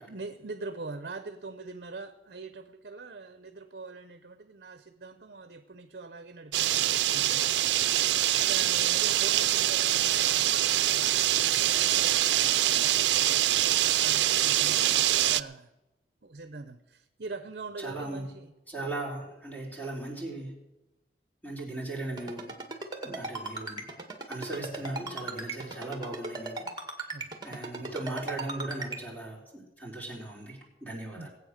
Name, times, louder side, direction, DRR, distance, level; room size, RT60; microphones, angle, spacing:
voice 1, 0.1-8.0 8.4-15.7 16.2-18.5 23.0-23.2 27.1-27.8 30.6-30.7 31.1-31.3, right 3 dB, 60° right, 10 dB, 0.8 m, -43 dB
sound 1, 6.5-15.4, right 13 dB, 85° right, 0.5 m, -24 dB
voice 2, 17.8-18.2 18.7-20.5 21.4-22.5 23.0-23.9 24.3-26.6 27.4-31.3, right 2 dB, 10° left, -3 dB, 4.1 m, -38 dB
Ringtone, 22.2-29.0, right 3 dB, 25° right, 1.9 m, -36 dB
19.0 x 8.4 x 6.6 m, 1.0 s
head